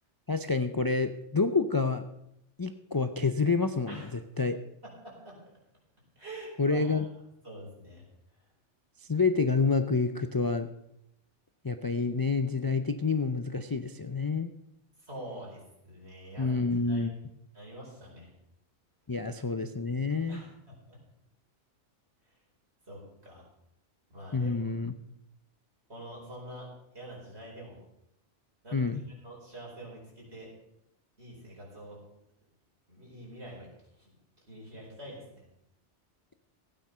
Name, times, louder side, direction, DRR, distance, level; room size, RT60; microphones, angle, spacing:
voice 1, 0.3-2.0 2.6-4.6 6.6-7.1 9.1-10.7 11.6-14.5 16.4-17.1 19.1-20.4 24.3-24.9 28.7-29.0, left 4 dB, 30° left, 8 dB, 0.4 m, -28 dB
voice 2, 4.8-5.4 6.2-7.0 7.4-8.0 15.0-17.2 17.5-18.3 20.3-21.0 22.9-23.4 24.1-24.7 25.9-26.7 26.9-27.8 28.6-30.5 31.2-32.0 32.9-33.7 34.0-34.1 34.5-35.4, right 1 dB, 65° right, -3 dB, 5.2 m, -46 dB
15.5 x 9.1 x 5.6 m, 0.81 s
omnidirectional pair, 1.2 m